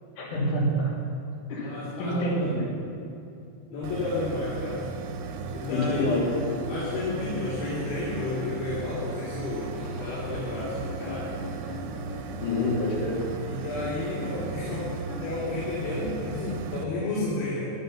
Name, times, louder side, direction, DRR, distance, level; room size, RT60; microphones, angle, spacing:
voice 1, 0.2-0.9 1.5-2.6 5.7-6.2 12.4-13.2, left 1 dB, 50° left, -5 dB, 3.8 m, -27 dB
voice 2, 1.6-2.5 3.7-4.8 5.5-6.4 6.7-11.3 13.5-14.9 15.2-17.7, left 2 dB, 75° left, -10 dB, 4.9 m, -32 dB
sound 1, 3.8-16.8, right 4 dB, 85° right, 2.9 m, -36 dB
sound 2, 5.6-8.8 9.0-15.7, left 4 dB, 15° left, 2.6 m, -42 dB
13.5 x 10.0 x 5.7 m, 2.6 s
omnidirectional pair, 5.2 m